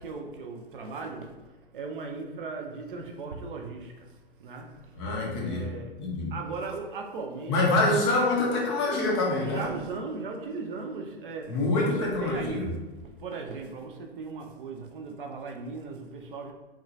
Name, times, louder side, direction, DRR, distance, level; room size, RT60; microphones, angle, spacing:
voice 1, 0.0-1.4 1.7-4.1 4.4-5.0 5.4-5.9 6.3-7.9 9.4-16.5, right 4 dB, 55° right, 3 dB, 0.5 m, -37 dB
voice 2, 5.0-5.7 6.0-6.3 7.5-9.7 11.5-12.6, left 2 dB, 25° left, -2 dB, 0.4 m, -26 dB
2.9 x 2.2 x 2.4 m, 1.1 s
figure-of-eight pair, 105°, 32 cm